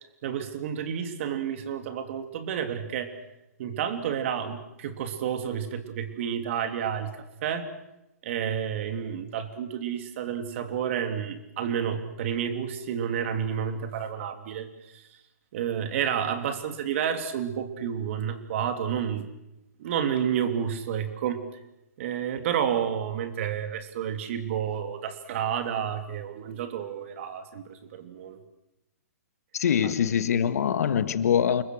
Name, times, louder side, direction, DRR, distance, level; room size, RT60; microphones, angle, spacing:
voice 1, 0.2-3.1 3.6-7.1 7.4-7.7 8.2-15.1 15.5-19.3 19.8-21.4 22.0-28.4 29.8-29.9, right 8 dB, 50° right, 8 dB, 3.1 m, -30 dB
voice 2, 29.5-31.6, left 8 dB, 65° left, 12 dB, 1.7 m, -24 dB
28.5 x 21.5 x 6.5 m, 0.91 s
hypercardioid pair, 140°, 9 cm